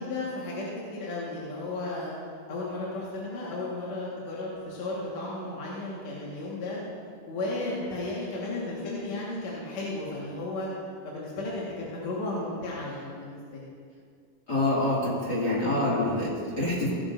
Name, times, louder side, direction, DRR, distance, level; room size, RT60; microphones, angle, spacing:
voice 1, 0.0-2.1 2.5-6.8 7.3-10.7 11.0-13.6, left 2 dB, 55° left, -6 dB, 2.6 m, -34 dB
voice 2, 14.5-16.9, left 2 dB, 30° left, -7 dB, 2.4 m, -26 dB
17.0 x 12.0 x 2.6 m, 2.2 s
omnidirectional pair, 4.2 m